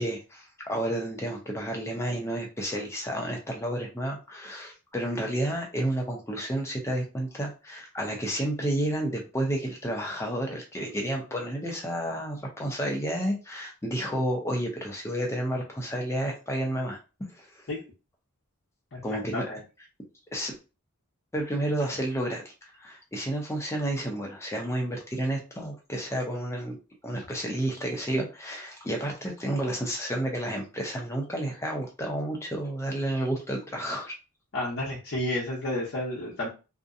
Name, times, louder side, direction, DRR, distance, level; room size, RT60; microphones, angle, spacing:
voice 1, 0.0-17.0 17.4-17.7 19.0-19.4 20.3-20.6 21.3-22.4 22.8-26.8 27.0-34.1, right 1 dB, 10° left, 0 dB, 0.6 m, -31 dB
voice 2, 18.9-19.6 34.5-36.5, left 1 dB, 55° left, -5 dB, 0.8 m, -31 dB
2.6 x 2.1 x 2.5 m, 0.31 s
head